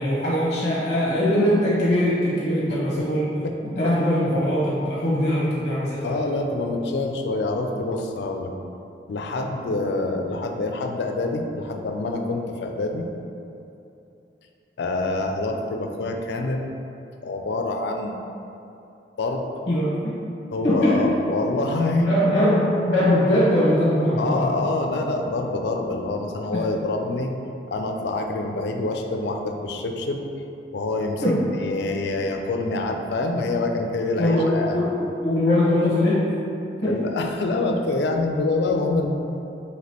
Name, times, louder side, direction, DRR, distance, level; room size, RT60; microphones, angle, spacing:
voice 1, 0.0-3.3 3.8-6.2 19.7-20.2 20.6-21.2 22.0-24.5 26.5-26.6 31.2-31.5 34.2-36.3 36.8-37.0, left 1 dB, 40° left, -8 dB, 0.9 m, -21 dB
voice 2, 6.0-8.5 9.1-13.1 14.8-16.6 17.2-18.2 19.2-19.5 20.5-22.1 24.2-27.3 27.7-30.2 30.7-31.3 31.6-34.8 36.8-39.1, left 2 dB, 70° left, 3 dB, 0.4 m, -26 dB
4.9 x 2.9 x 2.9 m, 2.8 s
head